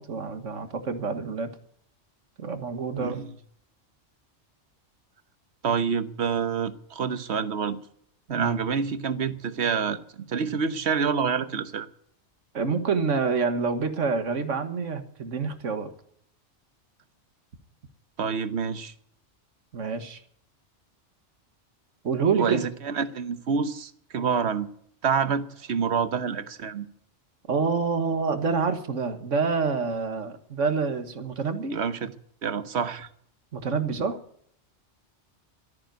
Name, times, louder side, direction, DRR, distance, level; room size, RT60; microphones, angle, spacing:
voice 1, 0.0-1.5 2.4-3.2 8.3-8.6 12.5-15.9 19.7-20.2 22.0-22.6 27.5-31.8 33.5-34.2, right 5 dB, 85° right, 1.8 m, -27 dB
voice 2, 3.0-3.3 5.6-7.8 8.3-11.9 18.2-18.9 22.4-24.7 25.0-26.9 31.7-32.1 32.4-33.1, right 6 dB, 65° right, 1.3 m, -27 dB
13.5 x 9.5 x 9.3 m
omnidirectional pair, 1.2 m